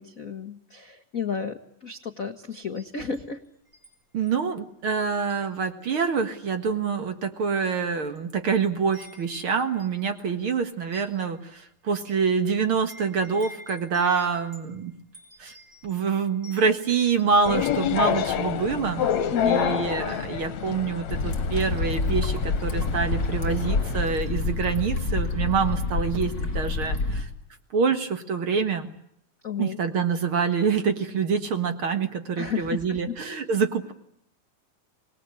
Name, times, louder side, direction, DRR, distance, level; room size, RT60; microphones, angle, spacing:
voice 1, 0.0-3.4 19.3-19.6 29.4-29.8 32.4-33.2, left 6 dB, 50° left, 6 dB, 1.0 m, -32 dB
Wind chime, 2.6-3.9 4.3-4.5 5.1-5.8 6.1-6.4 7.1-7.2 7.9-8.4 8.6-18.1, equal, 25° right, 6.1 m, -50 dB
voice 2, 4.1-14.9 15.4-15.5 15.8-19.0 19.4-27.3 27.7-28.9 29.6-33.9, right 5 dB, 50° right, 8 dB, 2.1 m, -26 dB
sound 1, 17.5-24.0, left 9 dB, 70° left, 2.4 m, -28 dB
sound 2, 21.1-27.2, left 3 dB, 35° left, 3.7 m, -27 dB
26.0 x 20.0 x 9.6 m, 0.74 s
omnidirectional pair, 3.4 m